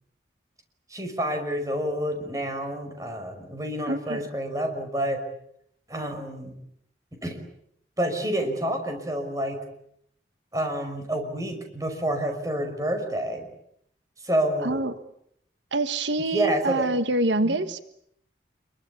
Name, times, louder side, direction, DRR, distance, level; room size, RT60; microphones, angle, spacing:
voice 1, 0.9-5.2 5.9-6.6 7.2-7.4 8.0-9.6 10.5-13.5 14.2-14.8 16.3-16.9 17.4-17.6, right 1 dB, 20° right, 5 dB, 5.7 m, -28 dB
voice 2, 3.9-4.2 14.6-14.9 15.7-17.8, right 2 dB, 90° right, 10 dB, 1.5 m, -26 dB
27.0 x 23.5 x 8.4 m, 0.70 s
head